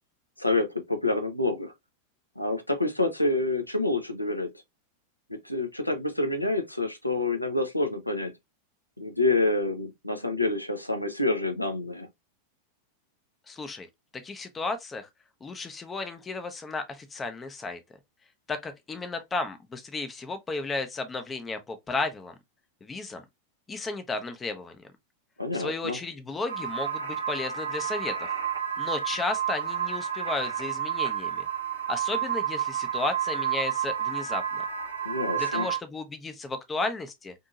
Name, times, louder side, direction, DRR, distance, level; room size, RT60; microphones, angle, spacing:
voice 1, 0.4-1.7 2.4-4.5 5.3-8.3 9.0-12.1 25.4-26.0 35.0-35.7, left 2 dB, 85° left, 0.5 m, -27 dB
voice 2, 13.5-13.9 14.1-15.1 15.4-17.8 18.5-22.3 22.8-23.2 23.7-24.8 25.5-28.3 28.8-31.4 31.9-34.6 35.4-37.3, left 3 dB, 15° left, 0.5 m, -33 dB
sound 1, 26.5-35.8, right 8 dB, 75° right, 0.6 m, -30 dB
2.7 x 2.6 x 2.3 m
figure-of-eight pair, 90°, 0 cm